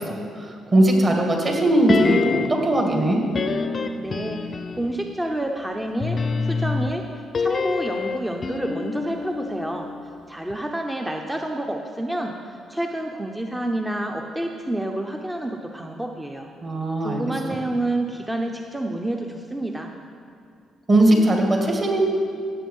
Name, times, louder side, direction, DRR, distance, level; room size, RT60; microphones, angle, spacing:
voice 1, 0.0-3.2 16.6-17.2 20.9-22.0, right 1 dB, 35° right, 1 dB, 2.2 m, -19 dB
sound 1, 1.9-2.7 3.3-5.0 6.0-10.2 10.5-10.6, left 4 dB, 40° left, 0.7 m, -26 dB
voice 2, 4.0-7.0 7.4-9.9 10.3-16.5 17.0-19.9, right 1 dB, 10° right, 2 dB, 0.8 m, -29 dB
17.0 x 7.7 x 5.5 m, 2.4 s
cardioid pair, 90°, 0 cm